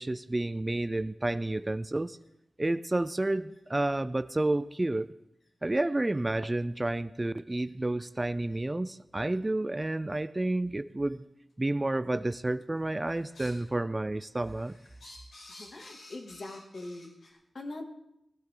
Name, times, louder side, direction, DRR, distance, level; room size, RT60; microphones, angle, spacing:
voice 1, 0.0-2.2 2.6-5.1 5.6-11.2 11.6-14.7, right 2 dB, 25° right, 14 dB, 0.5 m, -30 dB
sound 1, 1.3-1.4 2.1-2.3 2.9-3.0 3.5-3.6 4.3-4.4 5.4-5.5 6.1-6.2 6.7-6.8 7.6-7.7 8.4-8.6 9.3-9.4 10.1-10.2 11.0-11.1 12.1-12.4 12.7-13.7 14.1-17.3, left 1 dB, 85° left, 5.1 m, -53 dB
voice 2, 15.6-17.8, left 2 dB, 55° left, 2 dB, 2.4 m, -42 dB
18.5 x 16.5 x 3.8 m, 0.82 s
wide cardioid pair, 70°, 0 cm